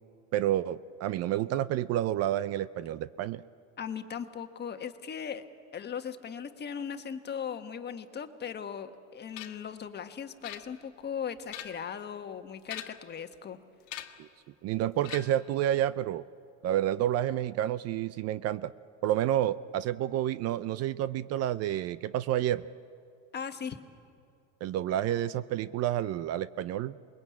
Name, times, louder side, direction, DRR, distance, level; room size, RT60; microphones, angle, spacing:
voice 1, 0.3-3.4 14.2-14.3 14.6-16.2 16.6-18.7 19.0-22.6 24.6-27.0, right 12 dB, 40° right, 16 dB, 0.6 m, -29 dB
voice 2, 3.8-5.4 5.7-13.6 23.3-23.8, left 7 dB, 25° left, 8 dB, 1.5 m, -38 dB
sound 1, 9.4-9.7 10.4-11.0 11.4-12.0 12.6-13.2 13.9-14.3 15.0-15.5, left 13 dB, 80° left, 1.6 m, -43 dB
28.0 x 21.5 x 8.6 m, 2.4 s
supercardioid pair, 110°, 37 cm